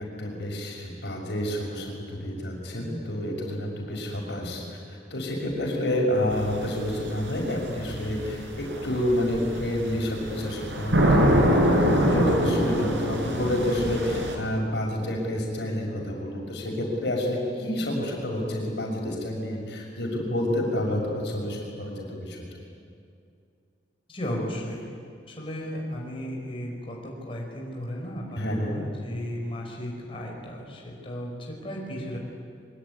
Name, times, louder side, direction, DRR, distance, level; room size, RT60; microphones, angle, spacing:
voice 1, 0.0-22.4 28.3-28.8, left 1 dB, 70° left, 0 dB, 6.3 m, -29 dB
sound 1, 6.3-14.4, equal, 75° right, 4.7 m, -25 dB
voice 2, 24.1-24.9 25.3-32.2, equal, 30° left, -2 dB, 5.1 m, -35 dB
24.0 x 23.5 x 9.8 m, 2.3 s
head